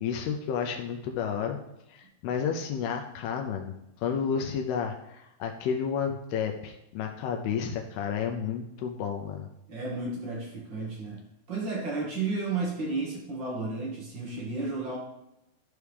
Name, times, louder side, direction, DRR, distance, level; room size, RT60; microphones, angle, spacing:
voice 1, 0.0-1.6 1.9-9.5, left 7 dB, 85° left, 3 dB, 2.6 m, -31 dB
voice 2, 9.7-11.2 11.5-15.0, right 3 dB, 65° right, -2 dB, 1.1 m, -32 dB
13.5 x 4.8 x 3.4 m, 0.87 s
omnidirectional pair, 4.5 m